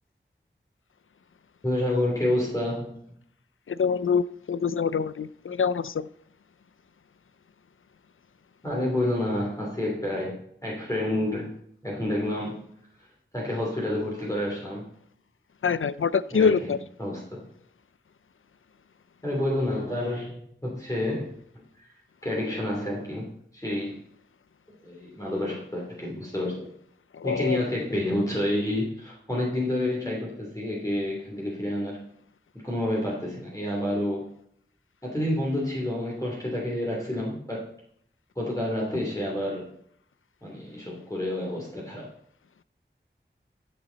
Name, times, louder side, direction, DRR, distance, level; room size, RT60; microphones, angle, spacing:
voice 1, 1.6-3.0 8.6-11.5 11.8-12.7 13.0-13.1 13.3-14.9 16.3-16.7 17.0-17.4 19.2-21.9 22.2-24.0 24.8-26.7 27.2-32.1 32.5-34.3 35.0-37.6 38.3-39.7 40.4-42.1, left 1 dB, 15° left, 2.9 m, -29 dB
voice 2, 3.7-6.1 15.6-16.8 27.2-27.6, left 6 dB, 80° left, 0.4 m, -25 dB
13.5 x 7.1 x 4.0 m
wide cardioid pair, 55°, 21 cm